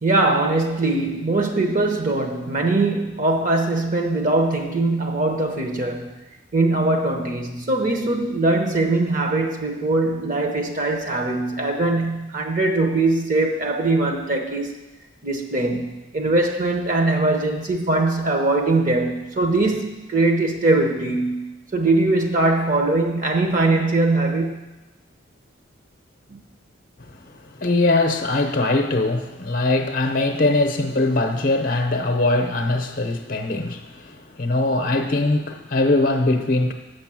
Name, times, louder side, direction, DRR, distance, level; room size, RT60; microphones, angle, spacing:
voice 1, 0.0-6.1 6.5-14.7 15.2-24.7 26.3-26.4, right 2 dB, 40° right, 3 dB, 0.9 m, -21 dB
voice 2, 27.0-36.7, left 2 dB, 45° left, 5 dB, 0.7 m, -21 dB
6.7 x 6.3 x 7.5 m, 1.1 s
head